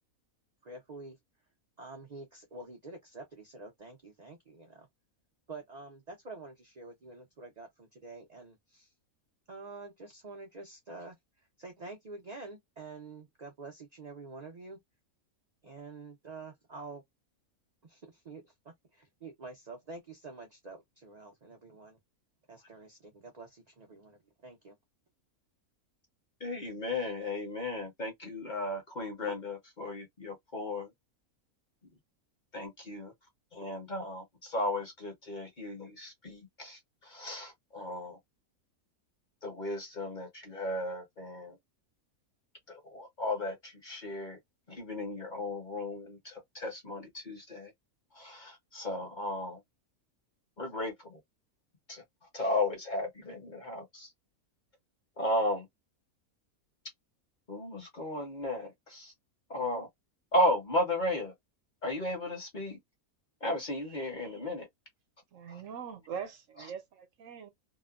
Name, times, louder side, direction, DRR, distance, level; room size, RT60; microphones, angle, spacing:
voice 1, 0.6-1.2 1.8-4.9 5.5-8.9 9.5-14.8 15.6-17.0 17.8-22.0 22.5-24.7, right 3 dB, 45° right, 0.5 m, -47 dB
voice 2, 26.4-30.9 32.5-33.1 33.5-38.2 39.4-41.6 42.7-44.4 44.7-47.7 48.1-49.6 50.6-51.2 51.9-52.0 52.3-54.1 55.2-55.7 57.5-59.1 59.5-59.9 60.3-61.3 61.8-62.8 63.4-64.7, left 1 dB, 35° left, 0.9 m, -35 dB
voice 3, 65.3-67.5, right 7 dB, 65° right, 1.0 m, -42 dB
2.9 x 2.1 x 2.3 m
omnidirectional pair, 1.6 m